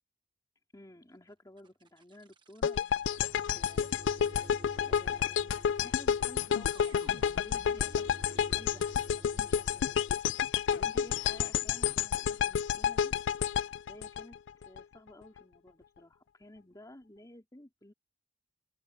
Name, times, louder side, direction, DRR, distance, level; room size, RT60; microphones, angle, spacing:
voice 1, 0.7-3.9 4.9-10.0 10.7-13.1 13.9-14.4 14.6-17.9, left 1 dB, 20° left, 2.8 m, -54 dB
sound 1, 1.6-10.2, right 1 dB, 25° right, 1.2 m, -52 dB
sound 2, 2.6-14.8, left 8 dB, 85° left, 0.3 m, -30 dB
open air
head